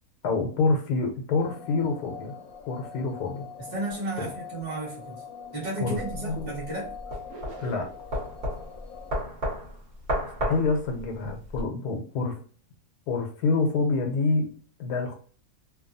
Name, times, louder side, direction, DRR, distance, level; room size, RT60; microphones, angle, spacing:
voice 1, 0.2-2.3 2.7-3.5 4.2-4.3 5.8-6.0 6.2-6.5 7.6-7.9 10.4-12.4 13.1-14.5 14.8-15.1, left 3 dB, 90° left, 3 dB, 1.1 m, -27 dB
sound 1, 1.4-9.2, left 7 dB, 70° left, 0.9 m, -43 dB
voice 2, 3.7-5.2 5.5-6.9, right 2 dB, 15° right, -7 dB, 1.0 m, -33 dB
sound 2, 6.0-11.6, equal, 50° right, 1.1 m, -33 dB
sound 3, 7.3-8.2, right 3 dB, 75° right, 1.1 m, -43 dB
2.9 x 2.2 x 2.5 m, 0.43 s
omnidirectional pair, 1.6 m